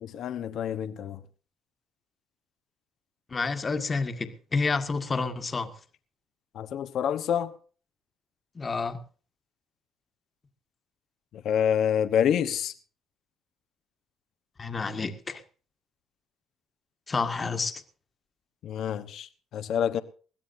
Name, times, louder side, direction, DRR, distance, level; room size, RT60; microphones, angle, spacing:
voice 1, 0.0-1.2 6.5-7.6 11.3-12.7 18.6-20.0, left 9 dB, 65° left, 1.1 m, -27 dB
voice 2, 3.3-5.7 8.5-9.0 14.6-15.4 17.1-17.8, left 4 dB, 30° left, 1.7 m, -29 dB
21.0 x 16.0 x 2.7 m
cardioid pair, 95°, 0 cm